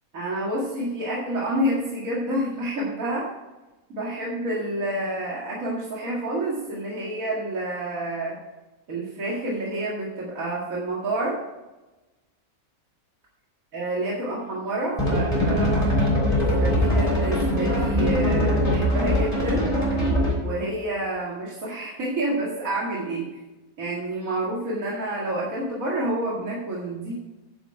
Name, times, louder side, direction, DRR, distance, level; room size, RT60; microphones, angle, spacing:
voice 1, 0.1-3.3 3.9-8.4 8.9-11.4 13.7-16.1 16.6-19.7 20.4-23.3 23.8-27.1, right 1 dB, 70° right, -5 dB, 2.4 m, -28 dB
sound 1, 15.0-20.5, equal, 25° left, 3.9 m, -22 dB
10.0 x 7.2 x 4.7 m, 1.1 s
omnidirectional pair, 1.5 m